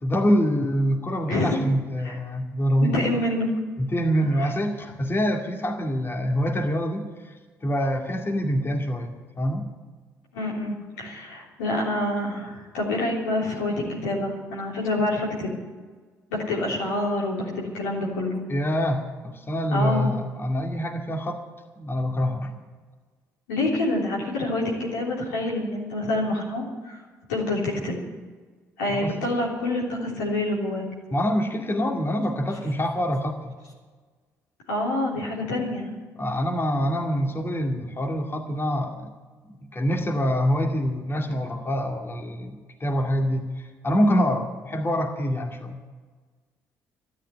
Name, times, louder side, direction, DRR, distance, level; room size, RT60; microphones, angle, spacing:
voice 1, 0.0-3.0 3.8-7.3 7.6-9.7 18.5-21.4 21.8-22.5 28.9-29.2 31.1-33.6 36.2-39.1 39.5-45.8, equal, 30° left, 3 dB, 2.2 m, -25 dB
voice 2, 2.8-3.5 4.4-4.5 10.3-15.5 16.3-18.4 19.7-20.1 23.5-27.0 27.3-28.0 28.8-30.8 34.7-35.9, left 1 dB, 85° left, -3 dB, 3.4 m, -27 dB
13.0 x 10.0 x 9.7 m, 1.4 s
hypercardioid pair, 50°, 8 cm